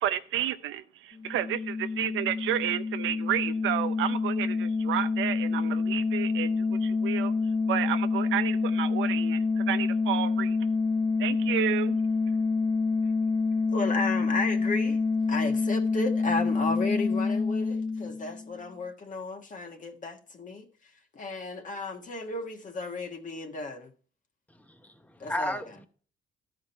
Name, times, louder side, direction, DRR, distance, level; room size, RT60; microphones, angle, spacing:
voice 1, 0.0-7.3 7.7-10.6 11.2-12.0, right 12 dB, 85° right, 0.7 m, -31 dB
sound 1, 1.1-18.6, left 4 dB, 25° left, 0.4 m, -27 dB
voice 2, 13.7-15.0 15.3-20.7 21.1-23.9 25.2-25.6, left 3 dB, 40° left, 1.5 m, -34 dB
voice 3, 24.5-25.8, left 1 dB, 10° left, 0.9 m, -34 dB
12.5 x 5.0 x 4.3 m
cardioid pair, 90°, 20 cm